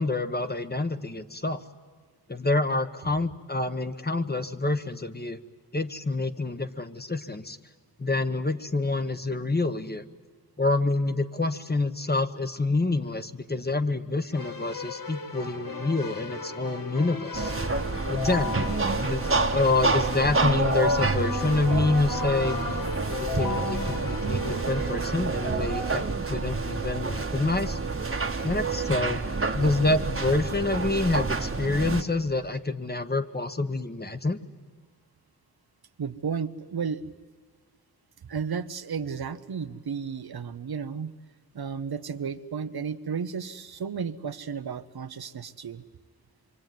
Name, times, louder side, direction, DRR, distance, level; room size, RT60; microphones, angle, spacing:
voice 1, 0.0-1.6 2.3-5.4 5.7-7.6 8.0-10.0 10.6-17.5 18.1-18.6 19.0-22.8 23.2-26.0 26.3-27.8 28.4-29.2 29.5-34.4, left 2 dB, 25° left, 9 dB, 1.1 m, -27 dB
Keyboard (musical), 14.3-24.9, left 4 dB, 60° left, 2.0 m, -35 dB
sound 1, 17.3-32.0, right 3 dB, 35° right, 1.3 m, -28 dB
voice 2, 36.0-37.0 38.2-41.1 41.5-45.8, right 6 dB, 75° right, 10 dB, 1.0 m, -33 dB
26.5 x 23.5 x 9.3 m, 1.5 s
wide cardioid pair, 70°, 38 cm